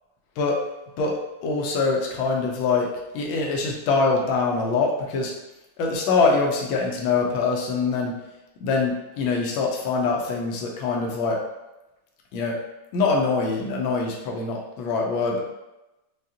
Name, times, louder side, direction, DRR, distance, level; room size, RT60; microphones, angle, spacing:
voice 1, 1.4-5.3 5.8-8.2 8.6-11.4 12.3-12.6 12.9-15.5, left 4 dB, 85° left, -1 dB, 1.5 m, -24 dB
5.0 x 2.3 x 2.8 m, 0.98 s
omnidirectional pair, 2.2 m